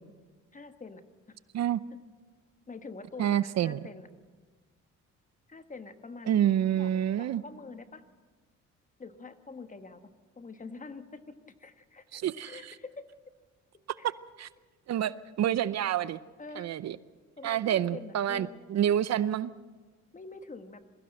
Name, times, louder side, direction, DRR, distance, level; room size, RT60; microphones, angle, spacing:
voice 1, 0.5-1.0 1.3-1.4 1.9-2.0 2.7-4.1 5.5-6.4 6.8-8.0 9.0-10.0 10.4-13.0 14.0-14.1 16.4-16.7 17.4-18.6 20.1-20.8, left 4 dB, 25° left, 9 dB, 1.3 m, -45 dB
voice 2, 3.2-3.8 6.3-7.4 12.1-12.7 14.4-14.5 14.9-16.2 16.6-17.0 17.4-19.5, right 10 dB, 60° right, 17 dB, 0.7 m, -28 dB
21.5 x 15.5 x 7.9 m, 1.4 s
cardioid pair, 90°, 30 cm